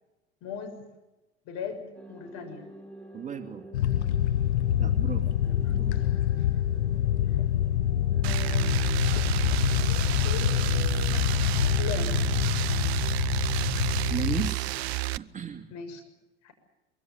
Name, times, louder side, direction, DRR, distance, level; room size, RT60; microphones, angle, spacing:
voice 1, 0.4-0.8 1.4-2.6 5.4-5.8 6.5-6.6 7.3-7.4 8.1-11.2 11.8-12.3 15.7-16.0 16.4-16.5, left 6 dB, 50° left, 6 dB, 6.6 m, -40 dB
sound 1, 1.9-13.7, right 1 dB, 5° left, 5.2 m, -48 dB
voice 2, 3.1-3.7 4.8-5.3 5.7-6.0 14.1-14.8 15.1-15.7, right 8 dB, 20° right, 5 dB, 2.6 m, -35 dB
sound 2, 3.7-14.5, left 11 dB, 75° left, 0.9 m, -26 dB
sound 3, 8.2-15.2, right 18 dB, 65° right, 0.7 m, -30 dB
24.0 x 23.5 x 7.1 m, 1.0 s
figure-of-eight pair, 80°, 34 cm